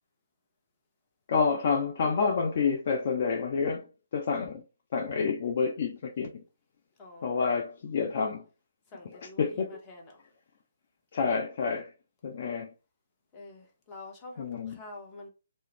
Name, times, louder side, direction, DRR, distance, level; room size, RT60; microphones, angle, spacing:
voice 1, 1.3-3.9 4.1-4.6 4.9-6.4 7.2-8.4 9.1-9.8 11.1-11.9 12.2-12.7 14.4-14.8, left 5 dB, 45° left, 0.4 m, -28 dB
voice 2, 7.0-7.5 8.9-10.2 13.3-15.3, left 2 dB, 20° left, 0.8 m, -47 dB
2.3 x 2.1 x 3.3 m
figure-of-eight pair, 140°, 0 cm